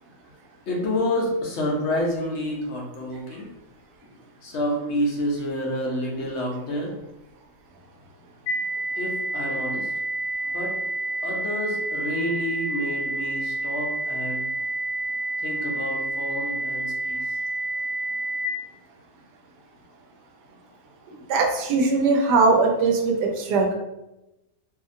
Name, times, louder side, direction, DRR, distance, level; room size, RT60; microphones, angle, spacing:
voice 1, 0.7-3.5 4.4-6.9 9.0-9.9 10.4-10.7 11.2-14.5 15.4-17.4, left 1 dB, 60° left, -2 dB, 0.8 m, -29 dB
sound 1, 8.5-18.5, right 2 dB, 85° left, 1.3 m, -29 dB
voice 2, 21.3-23.7, right 3 dB, 80° right, 1 dB, 1.2 m, -20 dB
2.7 x 2.7 x 2.5 m, 0.94 s
omnidirectional pair, 1.7 m